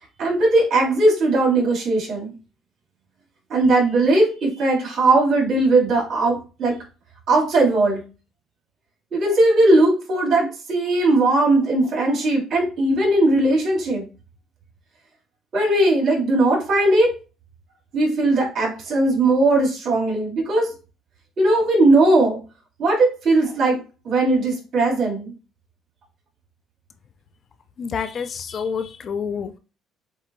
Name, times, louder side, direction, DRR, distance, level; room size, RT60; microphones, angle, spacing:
voice 1, 0.2-2.3 3.5-6.8 7.3-8.0 9.1-14.0 15.5-17.1 17.9-20.7 21.4-22.4 22.8-23.8 24.0-25.3, right 2 dB, 55° right, -3 dB, 2.6 m, -18 dB
voice 2, 27.8-29.6, left 6 dB, 45° left, 10 dB, 0.4 m, -28 dB
7.4 x 2.7 x 2.6 m, 0.34 s
cardioid pair, 120°, 0 cm